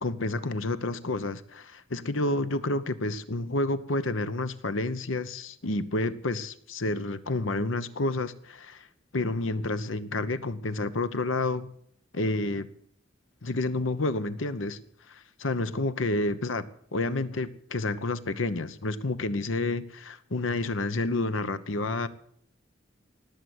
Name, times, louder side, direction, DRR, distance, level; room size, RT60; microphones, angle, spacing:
voice 1, 0.0-8.9 9.1-11.7 12.1-12.7 13.4-14.8 15.1-16.6 16.9-22.1, left 2 dB, 80° left, 13 dB, 1.0 m, -29 dB
18.5 x 8.0 x 7.9 m, 0.66 s
head